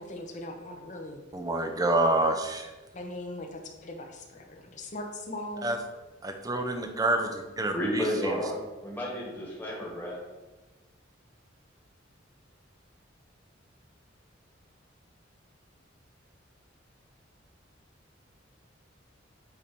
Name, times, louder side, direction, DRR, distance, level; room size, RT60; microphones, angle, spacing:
voice 1, 0.0-1.2 2.9-5.8, left 1 dB, 40° left, 3 dB, 0.8 m, -40 dB
voice 2, 1.3-2.7 5.6-5.8 6.2-8.1, right 2 dB, 20° right, 5 dB, 0.6 m, -27 dB
voice 3, 7.7-10.2, equal, 10° left, -4 dB, 1.4 m, -32 dB
8.3 x 2.8 x 5.1 m, 1.2 s
head